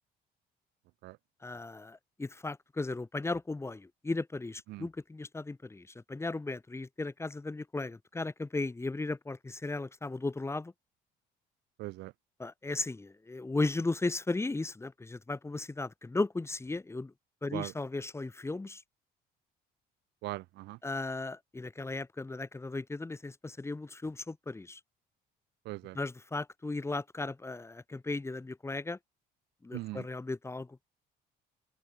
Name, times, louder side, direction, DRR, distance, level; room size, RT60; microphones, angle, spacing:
voice 1, 1.4-10.7 12.4-17.1 17.4-18.8 20.8-24.8 26.0-29.0 29.6-30.9, left 3 dB, 15° left, 5.4 m, -36 dB
voice 2, 11.8-12.1 17.5-17.7 20.2-20.8 25.7-26.0 29.7-30.1, right 19 dB, 85° right, 5.2 m, -40 dB
cardioid pair, 110°, 17 cm